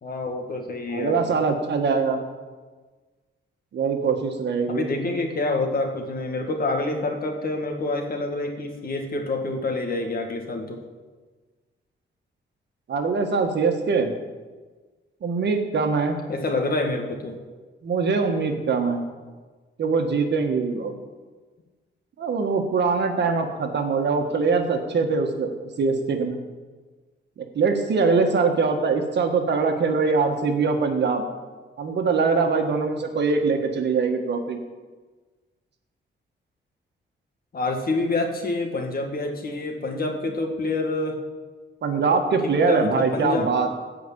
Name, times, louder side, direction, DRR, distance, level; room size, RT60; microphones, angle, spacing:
voice 1, 0.0-1.4 4.7-10.8 16.3-17.4 37.5-41.2 42.7-43.5, left 2 dB, 50° left, 3 dB, 1.9 m, -27 dB
voice 2, 0.9-2.2 3.7-4.9 12.9-14.1 15.2-16.2 17.8-19.0 19.8-20.9 22.2-25.5 25.8-26.4 27.4-31.2 31.8-34.6 41.8-43.7, right 4 dB, 65° right, 5 dB, 1.6 m, -23 dB
14.0 x 5.1 x 8.5 m, 1.4 s
cardioid pair, 110°, 19 cm